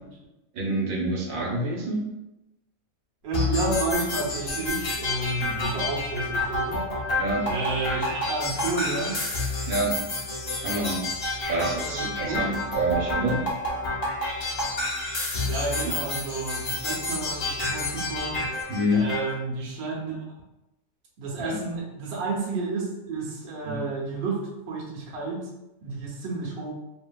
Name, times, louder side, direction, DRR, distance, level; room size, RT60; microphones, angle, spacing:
voice 1, 0.5-2.0 5.3-5.8 7.2-7.6 9.7-10.1 10.6-11.1 11.5-13.4 15.8-15.9 18.7-19.1 21.4-21.6 23.7-23.8, right 1 dB, 75° right, -3 dB, 1.1 m, -27 dB
voice 2, 3.2-6.8 7.5-9.2 11.8-12.5 15.4-18.5 19.0-20.2 21.2-25.5 25.8-26.7, right 3 dB, 55° right, -4 dB, 0.8 m, -31 dB
sound 1, 3.3-19.3, left 2 dB, 50° left, 0.5 m, -29 dB
2.8 x 2.6 x 2.2 m, 0.95 s
omnidirectional pair, 1.5 m